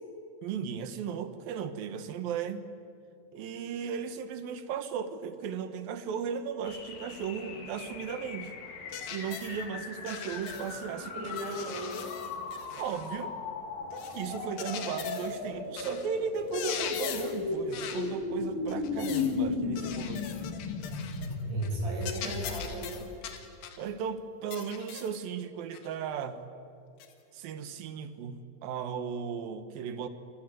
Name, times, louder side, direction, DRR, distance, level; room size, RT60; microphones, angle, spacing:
voice 1, 0.4-2.7 3.3-8.5 9.1-11.1 11.6-11.7 12.8-13.4 14.1-20.4 23.8-26.5 27.3-30.1, right 7 dB, 65° right, 10 dB, 2.9 m, -36 dB
sound 1, 6.7-22.9, left 3 dB, 60° left, 3.9 m, -36 dB
sound 2, 8.9-9.6 10.1-10.8 11.2-13.1 13.9-15.4 15.8-16.1 16.4-17.4 17.7-18.1 18.7-19.4 19.8-21.4 21.6-21.8 22.0-23.8 24.5-25.2 25.7-25.9 27.0-27.1, left 8 dB, 80° left, 3.8 m, -41 dB
voice 2, 10.9-12.1 21.4-23.1, right 1 dB, 50° right, 1 dB, 7.3 m, -38 dB
28.0 x 22.0 x 7.7 m, 2.5 s
omnidirectional pair, 4.7 m